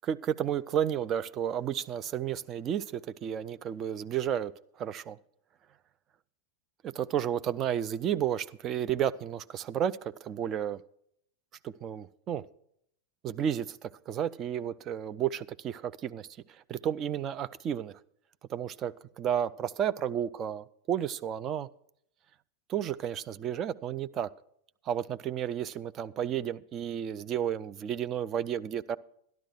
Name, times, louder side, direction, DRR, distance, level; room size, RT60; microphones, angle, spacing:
voice 1, 0.1-4.5 4.8-5.2 6.8-10.8 11.6-12.5 13.2-18.0 18.5-21.7 22.7-24.3 24.8-29.0, right 9 dB, 30° right, 0.5 m, -32 dB
12.0 x 12.0 x 4.5 m
figure-of-eight pair, 90°, 0 cm